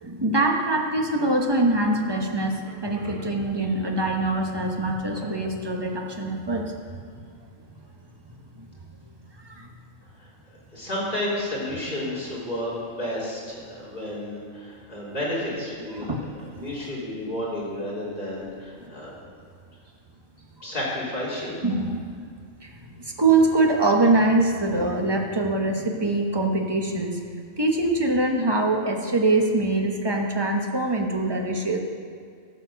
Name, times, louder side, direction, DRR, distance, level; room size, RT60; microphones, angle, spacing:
voice 1, 0.0-6.7 9.5-9.7 15.9-16.2 16.6-16.7 21.6-22.1 22.6-22.7 23.2-27.2 27.6-31.8, right 2 dB, 20° right, 2 dB, 1.1 m, -23 dB
voice 2, 10.7-16.1 16.6-19.2 20.6-21.6, left 1 dB, 40° left, -7 dB, 3.6 m, -31 dB
13.5 x 7.1 x 6.4 m, 2.2 s
omnidirectional pair, 1.3 m